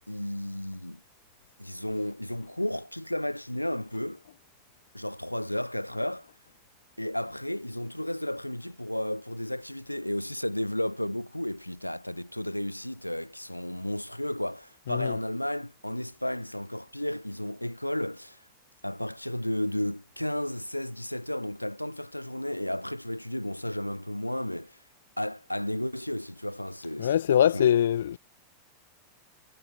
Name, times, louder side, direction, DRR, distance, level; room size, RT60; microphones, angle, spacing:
voice 1, 0.1-1.0 1.6-4.2 4.9-6.3 7.0-18.4 18.8-24.8 25.2-27.7, left 1 dB, 90° left, 3.7 m, -33 dB
voice 2, 14.9-15.2 27.0-28.2, left 10 dB, 65° left, 3.9 m, -23 dB
figure-of-eight pair, 90°, 0 cm